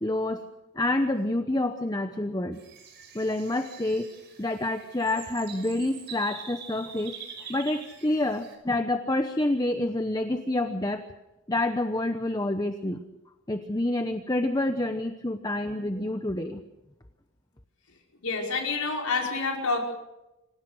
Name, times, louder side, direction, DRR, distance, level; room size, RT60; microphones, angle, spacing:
voice 1, 0.0-0.4 0.8-2.6 3.1-4.1 4.4-7.1 7.5-11.1 11.5-13.0 13.5-16.6, left 1 dB, 15° left, 7 dB, 0.9 m, -28 dB
sound 1, 2.5-8.6, right 7 dB, 50° right, 5.6 m, -45 dB
voice 2, 18.2-19.8, left 4 dB, 85° left, 0 dB, 5.3 m, -28 dB
27.0 x 17.0 x 6.5 m, 0.96 s
head